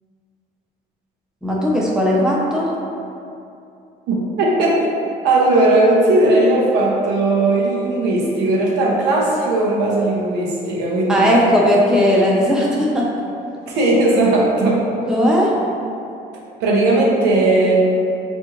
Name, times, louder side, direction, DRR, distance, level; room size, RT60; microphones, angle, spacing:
voice 1, 1.4-2.7 11.1-13.1 15.1-15.5, equal, 5° right, -4 dB, 0.5 m, -17 dB
voice 2, 4.1-4.8 5.2-11.5 13.7-14.8 16.6-17.8, right 2 dB, 85° right, -4 dB, 0.7 m, -17 dB
3.6 x 2.6 x 2.9 m, 2.6 s
cardioid pair, 110°, 17 cm